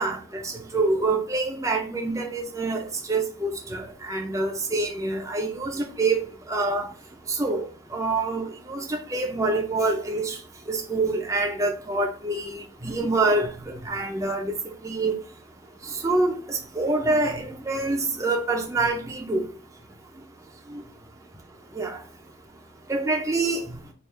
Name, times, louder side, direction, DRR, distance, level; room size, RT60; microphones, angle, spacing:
voice 1, 0.0-6.9 7.3-7.6 7.9-10.4 10.7-13.5 13.8-14.5 14.8-15.2 16.0-19.5 20.7-20.8 21.8-22.0 22.9-23.6, right 3 dB, 15° right, 0.4 m, -26 dB
3.4 x 2.4 x 4.4 m
head